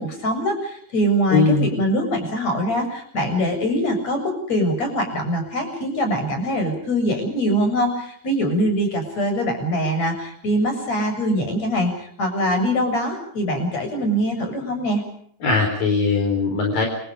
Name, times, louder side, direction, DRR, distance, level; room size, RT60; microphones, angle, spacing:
voice 1, 0.0-15.0, equal, 45° left, 6 dB, 8.5 m, -23 dB
voice 2, 1.3-1.7 15.4-16.9, left 4 dB, 65° left, 2 dB, 6.1 m, -19 dB
29.5 x 27.5 x 5.1 m, 0.65 s
omnidirectional pair, 4.4 m